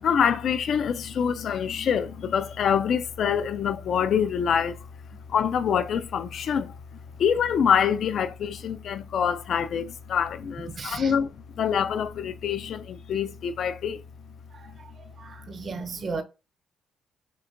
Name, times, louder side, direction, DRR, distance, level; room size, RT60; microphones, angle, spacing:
voice 1, 0.0-4.8 5.3-6.8 7.2-14.0 14.7-14.8 15.7-15.8, left 7 dB, 65° left, 0.3 m, -25 dB
voice 2, 10.6-11.1 14.5-16.2, right 4 dB, 45° right, 0.6 m, -36 dB
5.1 x 2.1 x 2.5 m
cardioid pair, 90°, 0 cm